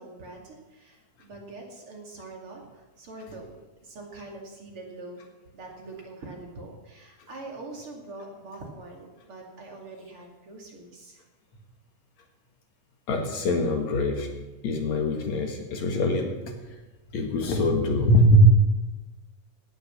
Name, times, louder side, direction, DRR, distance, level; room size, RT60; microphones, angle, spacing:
voice 1, 0.0-5.2 5.5-11.2, right 2 dB, 45° right, 0 dB, 3.1 m, -43 dB
voice 2, 13.1-14.3 14.6-16.3 17.1-18.5, equal, 65° left, 3 dB, 2.9 m, -22 dB
17.0 x 9.2 x 6.9 m, 1.1 s
omnidirectional pair, 3.6 m